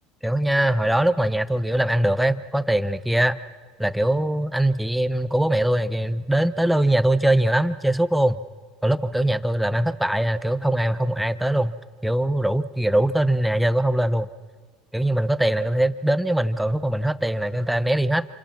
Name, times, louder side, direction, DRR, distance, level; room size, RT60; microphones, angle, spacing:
voice 1, 0.2-3.4 3.8-8.4 8.8-11.7 12.0-14.3 14.9-18.3, right 1 dB, 5° right, 13 dB, 1.0 m, -22 dB
27.5 x 26.5 x 6.0 m, 1.5 s
supercardioid pair, 100°, 0 cm